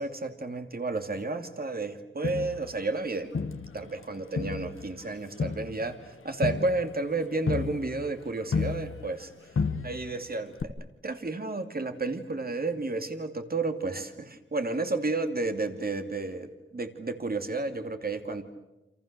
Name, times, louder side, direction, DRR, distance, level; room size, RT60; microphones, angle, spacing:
voice 1, 0.0-3.3 3.7-9.3 9.8-10.7 11.0-18.4, right 3 dB, 45° right, 6 dB, 2.6 m, -32 dB
Crowd, 2.2-4.0 4.4-9.3 9.5-10.2 10.6-10.7, left 4 dB, 80° left, 1.6 m, -33 dB
28.5 x 27.5 x 6.8 m, 1.0 s
wide cardioid pair, 65°, 21 cm